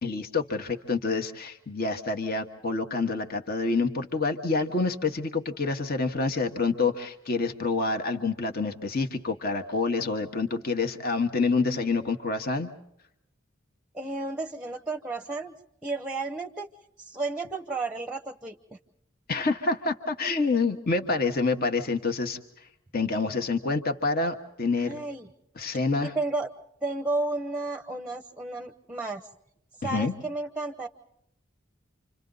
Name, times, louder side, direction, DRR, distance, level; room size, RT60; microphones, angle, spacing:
voice 1, 0.0-12.7 19.3-22.4 22.9-25.0 25.6-26.1 29.8-30.1, left 3 dB, 45° left, 5 dB, 1.3 m, -27 dB
voice 2, 13.9-15.6 15.8-16.7 17.0-18.8 24.8-25.3 26.0-26.5 26.8-29.2 29.8-30.9, right 2 dB, 5° right, 4 dB, 0.9 m, -32 dB
29.5 x 26.5 x 4.0 m, 0.80 s
head